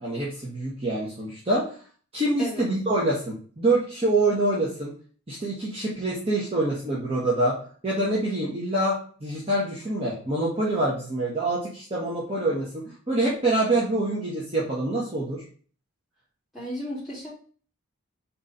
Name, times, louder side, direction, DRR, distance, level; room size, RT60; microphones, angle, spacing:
voice 1, 0.0-1.6 2.1-4.9 5.3-7.5 7.8-15.4, right 2 dB, 25° right, -6 dB, 1.4 m, -26 dB
voice 2, 16.5-17.3, equal, ahead, -10 dB, 2.8 m, -34 dB
4.4 x 4.3 x 5.3 m, 0.43 s
head